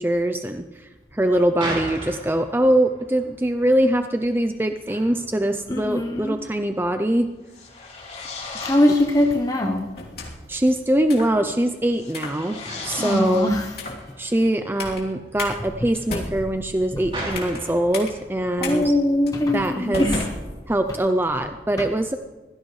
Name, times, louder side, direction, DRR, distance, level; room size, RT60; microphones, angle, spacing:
voice 1, 0.0-7.3 10.5-13.5 14.2-18.9 19.5-20.1 20.7-22.2, right 1 dB, 10° right, 7 dB, 0.5 m, -23 dB
sound 1, 1.0-20.7, right 1 dB, 30° right, 4.8 m, -40 dB
voice 2, 5.7-6.4 8.6-9.9 13.0-13.7 16.9-17.0 18.6-20.2, left 1 dB, 20° left, 2 dB, 0.9 m, -21 dB
sound 2, 7.4-9.5 11.9-14.2, left 4 dB, 40° left, 3.5 m, -37 dB
sound 3, 9.9-10.5 11.1-11.4 12.1-12.4 12.9-13.2 13.7-14.1 14.8-15.0 15.4-15.5 15.9-17.6 17.9-18.1 18.6-18.7 19.3-19.4 19.9-21.0, left 3 dB, 60° left, 3.1 m, -33 dB
24.0 x 16.5 x 3.2 m, 1.2 s
head